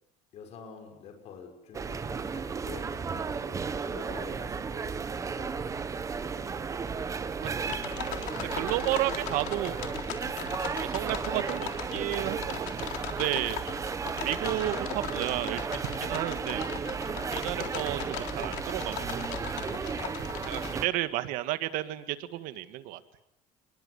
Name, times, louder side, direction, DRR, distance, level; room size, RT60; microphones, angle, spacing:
voice 1, 0.3-6.8, left 6 dB, 50° left, 5 dB, 5.9 m, -48 dB
sound 1, 1.7-20.9, right 5 dB, 20° right, 1.6 m, -34 dB
voice 2, 7.4-7.8 8.5-9.8 10.8-13.6 14.2-16.7 17.3-19.3 20.5-23.0, right 15 dB, 75° right, 12 dB, 1.9 m, -32 dB
sound 2, 7.6-20.7, left 12 dB, 75° left, 3.6 m, -40 dB
29.0 x 22.0 x 8.2 m, 0.84 s
cardioid pair, 145°, 15 cm